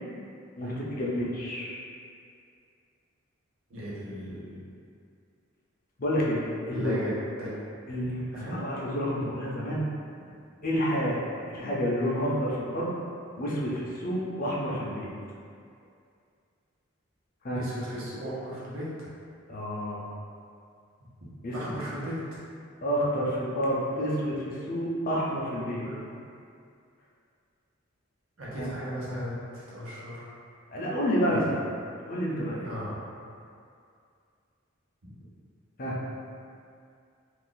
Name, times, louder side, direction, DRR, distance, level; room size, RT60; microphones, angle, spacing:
voice 1, 0.6-1.8 6.0-7.0 7.9-8.2 8.5-9.9 10.6-11.2 11.5-12.9 13.4-15.1 17.4-17.6 19.5-20.0 21.4-21.7 22.8-25.9 28.6-28.7 30.7-31.6 32.1-32.7 35.8-36.0, equal, 45° left, -5 dB, 0.5 m, -29 dB
voice 2, 3.7-4.6 6.7-7.6 8.3-8.6 17.5-19.1 21.2-22.4 25.8-26.1 28.4-30.3 31.3-31.6 32.6-33.0 35.0-35.1, equal, 90° right, -7 dB, 0.9 m, -36 dB
2.5 x 2.4 x 3.8 m, 2.4 s
head